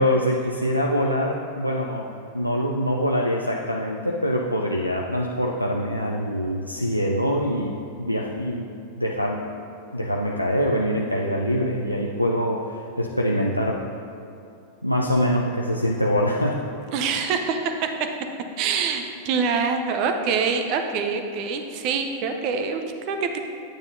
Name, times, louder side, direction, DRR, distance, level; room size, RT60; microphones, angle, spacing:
voice 1, 0.0-2.1 2.3-8.7 9.0-9.5 9.9-13.8 14.8-16.6, equal, 90° left, -1 dB, 0.5 m, -24 dB
voice 2, 16.9-17.9 18.6-23.4, right 5 dB, 40° right, 5 dB, 0.7 m, -25 dB
9.5 x 8.8 x 2.7 m, 2.6 s
figure-of-eight pair, 90°, 0 cm